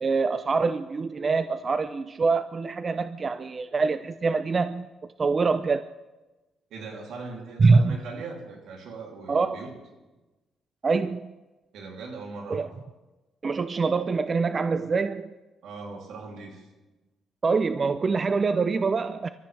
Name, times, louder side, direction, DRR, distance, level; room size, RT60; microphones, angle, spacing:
voice 1, 0.0-4.9 5.2-5.9 7.6-8.0 9.3-9.6 10.8-11.3 12.5-12.7 13.4-15.3 17.4-19.3, right 4 dB, 35° right, 12 dB, 0.5 m, -24 dB
voice 2, 6.7-9.7 11.7-12.7 15.6-16.7, right 3 dB, 80° right, 1 dB, 2.9 m, -39 dB
25.5 x 13.5 x 3.3 m, 1.1 s
cardioid pair, 90°, 0 cm